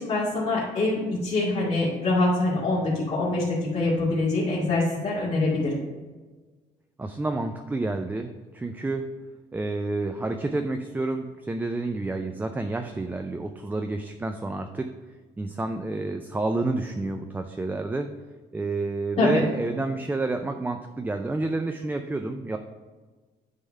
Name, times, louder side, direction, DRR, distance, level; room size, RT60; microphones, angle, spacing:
voice 1, 0.0-5.7 19.2-19.4, left 2 dB, 35° left, -8 dB, 2.4 m, -24 dB
voice 2, 7.0-9.1 9.5-14.9 15.4-18.1 18.5-22.6, right 2 dB, 10° right, 6 dB, 0.4 m, -29 dB
10.0 x 3.5 x 5.4 m, 1.3 s
cardioid pair, 110°, 17 cm